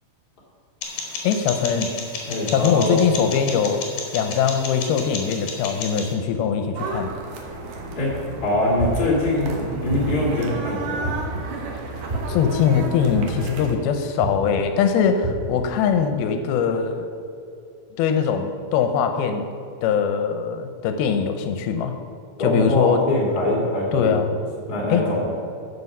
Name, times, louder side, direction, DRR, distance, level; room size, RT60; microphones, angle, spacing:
sound 1, 0.8-6.1, left 4 dB, 70° left, 3.1 m, -33 dB
voice 1, 1.2-1.9 2.5-3.8 4.1-7.1 12.3-17.1 18.0-19.5 19.8-21.9 22.4-23.0 23.9-24.3 24.9-25.0, left 7 dB, 85° left, 6 dB, 2.6 m, -21 dB
voice 2, 2.2-3.0 7.9-11.1 22.4-24.2 24.7-25.2, left 1 dB, 30° left, -4 dB, 2.7 m, -23 dB
sound 2, 6.8-13.7, right 2 dB, 65° right, 2.4 m, -32 dB
sound 3, 8.8-9.2 9.9-10.4 11.0-11.5 12.1-12.5 13.1-13.6 14.2-14.5 15.2-15.6, right 1 dB, 15° right, 1.1 m, -28 dB
14.0 x 5.8 x 5.4 m, 2.6 s
omnidirectional pair, 4.3 m